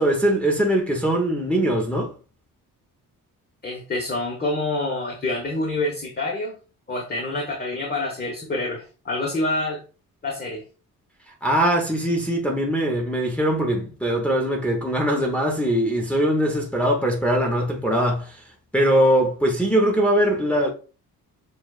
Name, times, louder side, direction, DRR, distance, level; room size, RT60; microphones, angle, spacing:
voice 1, 0.0-2.1 11.4-18.4 18.7-20.7, right 1 dB, 5° left, 0.9 m, -21 dB
voice 2, 3.6-6.5 6.9-9.8 10.2-10.6, left 2 dB, 25° left, 1.1 m, -27 dB
7.1 x 2.4 x 2.4 m
cardioid pair, 105°, 35 cm